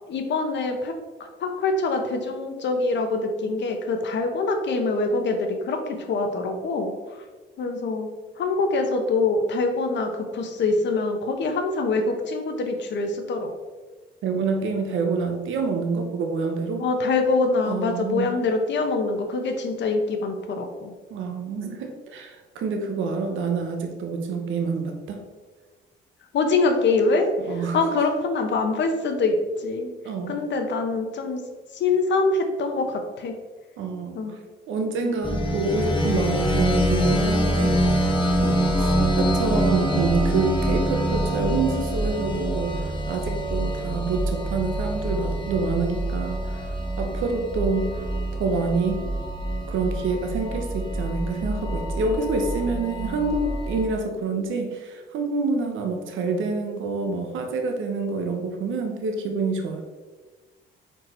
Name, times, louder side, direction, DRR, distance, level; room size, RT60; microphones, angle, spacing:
voice 1, 0.1-0.9 1.4-6.9 7.6-8.1 8.4-13.5 16.8-20.9 26.3-27.3 27.7-29.9 30.3-31.4 31.7-33.3 34.1-34.3 35.0-35.2, left 3 dB, 65° left, 5 dB, 1.0 m, -24 dB
voice 2, 14.2-16.9 17.6-18.3 21.1-25.2 27.5-27.8 30.0-30.4 33.8-34.4 34.7-38.0 38.4-48.1 48.4-49.0 49.7-59.8, right 4 dB, 80° right, 4 dB, 0.9 m, -27 dB
sound 1, 35.2-53.9, equal, 25° left, 1.2 m, -25 dB
4.6 x 4.6 x 4.4 m, 1.3 s
cardioid pair, 90°, 20 cm